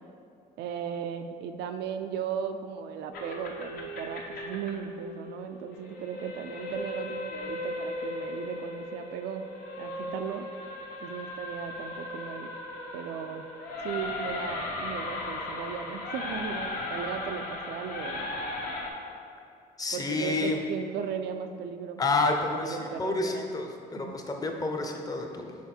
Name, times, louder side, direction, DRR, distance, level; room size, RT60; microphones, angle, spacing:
voice 1, 0.6-9.5 9.8-10.4 11.0-12.5 12.9-13.5 13.8-18.3 19.9-22.0 22.5-23.6 24.0-24.1, right 7 dB, 80° right, 7 dB, 0.4 m, -36 dB
sound 1, 3.1-18.9, left 2 dB, 60° left, 1.0 m, -37 dB
voice 2, 19.8-20.6 22.0-25.5, left 3 dB, 20° left, 3 dB, 0.7 m, -29 dB
5.9 x 4.6 x 4.3 m, 2.5 s
cardioid pair, 110°, 17 cm